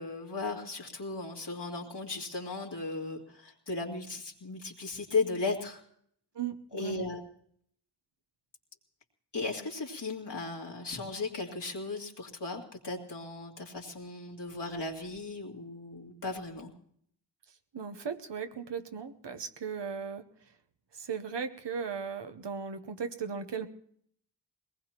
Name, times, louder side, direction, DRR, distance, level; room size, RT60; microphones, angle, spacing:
voice 1, 0.0-5.8 6.7-7.2 9.3-16.7, left 3 dB, 80° left, -1 dB, 2.4 m, -36 dB
voice 2, 6.3-7.1 17.7-20.2 20.9-23.7, right 6 dB, 85° right, 9 dB, 1.0 m, -37 dB
22.0 x 19.0 x 2.9 m, 0.65 s
wide cardioid pair, 45°, 41 cm